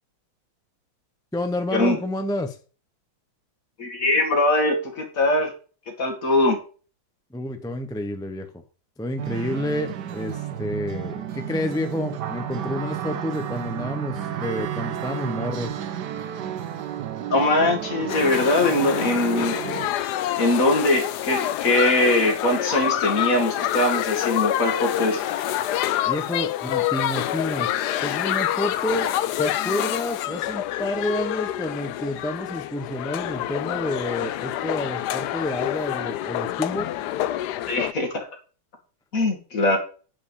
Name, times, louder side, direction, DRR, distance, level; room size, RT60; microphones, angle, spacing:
voice 1, 1.3-2.6 7.3-8.5 9.0-15.8 26.0-27.7 28.0-29.1 29.4-36.9, left 1 dB, 5° left, 7 dB, 0.5 m, -29 dB
voice 2, 3.8-5.5 6.0-6.6 17.3-19.6 20.4-25.2 37.7-38.3 39.1-39.8, left 2 dB, 45° left, 3 dB, 2.4 m, -21 dB
sound 1, 9.2-19.9, right 10 dB, 65° right, 1.4 m, -32 dB
sound 2, 18.1-37.9, left 13 dB, 70° left, 1.0 m, -27 dB
9.2 x 5.3 x 7.1 m, 0.38 s
omnidirectional pair, 2.2 m